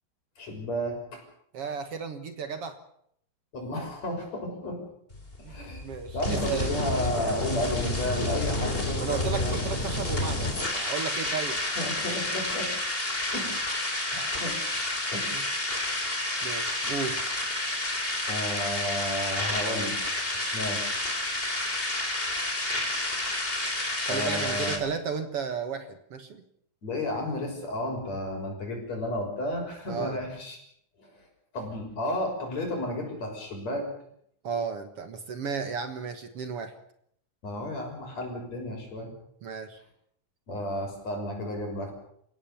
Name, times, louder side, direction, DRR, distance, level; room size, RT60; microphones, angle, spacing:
voice 1, 0.4-1.2 3.5-4.8 5.4-5.8 6.1-9.8 11.8-12.7 13.3-13.8 14.1-14.6 15.1-15.5 18.3-20.0 20.5-21.0 24.1-24.9 26.8-30.6 31.0-31.2 31.5-33.9 37.4-39.1 40.5-41.9, left 1 dB, 60° left, 2 dB, 7.6 m, -32 dB
voice 2, 1.5-2.8 5.4-6.7 9.0-11.6 15.3-15.4 16.4-17.2 24.0-26.4 29.9-30.2 34.4-36.8 39.4-39.8, right 6 dB, 55° right, 8 dB, 2.2 m, -34 dB
sound 1, 5.1-24.8, left 2 dB, 20° left, 3.7 m, -30 dB
29.0 x 16.5 x 7.1 m, 0.70 s
omnidirectional pair, 3.4 m